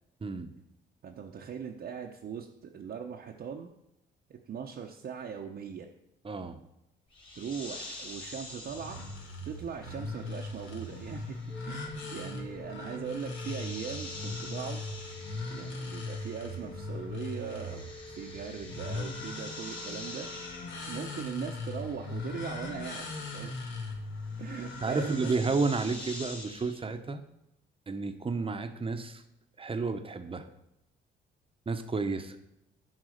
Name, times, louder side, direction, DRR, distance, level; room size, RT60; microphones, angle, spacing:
voice 1, 0.2-0.5 6.2-6.6 24.8-27.2 27.9-29.2 29.6-30.5 31.7-32.4, right 4 dB, 25° right, 8 dB, 0.9 m, -31 dB
voice 2, 1.0-3.7 4.3-5.9 7.4-9.0 9.4-11.4 11.6-14.8 15.5-20.3 20.9-23.1 23.3-23.7 24.4-25.3, right 7 dB, 55° right, 0 dB, 0.9 m, -40 dB
sound 1, 7.1-16.8 17.1-26.8, left 2 dB, 25° left, 2.4 m, -47 dB
sound 2, 8.7-25.4, left 2 dB, 70° left, 1.6 m, -40 dB
sound 3, 11.5-20.5, left 2 dB, ahead, 1.0 m, -49 dB
10.5 x 4.1 x 6.5 m, 0.86 s
cardioid pair, 90°, 20 cm